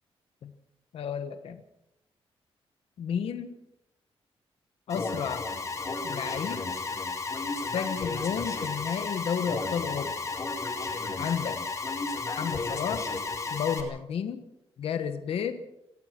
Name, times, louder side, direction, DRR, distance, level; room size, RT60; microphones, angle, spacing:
voice 1, 0.9-1.6 3.0-3.6 4.9-5.5 6.0-6.7 7.7-10.1 11.2-11.6 12.3-13.1 13.5-14.5 14.8-15.6, left 7 dB, 70° left, 8 dB, 1.3 m, -32 dB
Alarm, 4.9-13.8, left 3 dB, 30° left, 4.2 m, -33 dB
26.5 x 17.0 x 6.0 m, 0.86 s
wide cardioid pair, 175°, 10 cm